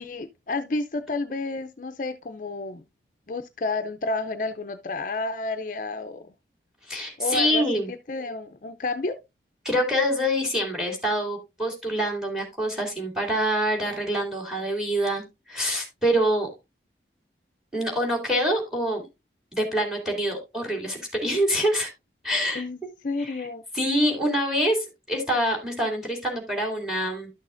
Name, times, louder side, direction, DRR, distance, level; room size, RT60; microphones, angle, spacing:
voice 1, 0.0-2.8 3.3-6.2 7.2-9.2 22.5-22.8 23.0-23.6, left 3 dB, 45° left, 0.5 m, -30 dB
voice 2, 6.8-7.9 9.6-16.5 17.7-19.1 19.5-21.9 22.2-22.6 23.2-23.5 23.7-27.3, equal, 5° right, 2.6 m, -25 dB
12.0 x 6.4 x 2.5 m
head